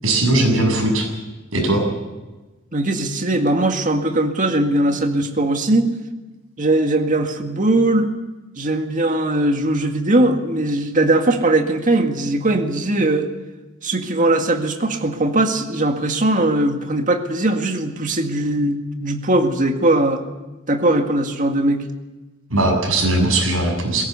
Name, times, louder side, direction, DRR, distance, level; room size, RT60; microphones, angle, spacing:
voice 1, 0.0-1.1 1.5-1.8 22.5-24.0, right 2 dB, 85° right, 2 dB, 7.2 m, -18 dB
voice 2, 2.7-5.9 6.6-8.1 8.6-13.3 13.8-20.2 20.7-21.8, right 2 dB, 40° right, 5 dB, 1.9 m, -19 dB
20.5 x 17.5 x 8.3 m, 1.2 s
head